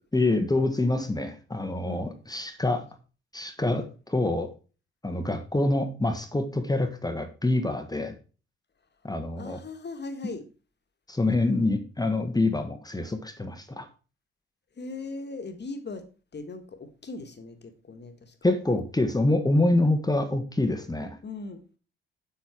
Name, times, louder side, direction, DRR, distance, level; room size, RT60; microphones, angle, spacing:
voice 1, 0.1-2.9 3.3-4.5 5.0-8.1 9.0-9.6 11.1-13.9 18.4-21.2, left 2 dB, 10° left, 1.6 m, -26 dB
voice 2, 9.4-10.4 11.5-11.7 14.8-16.1 16.3-18.6 21.2-21.6, left 3 dB, 35° left, 1.9 m, -39 dB
8.2 x 8.2 x 4.6 m
figure-of-eight pair, 45°, 30 cm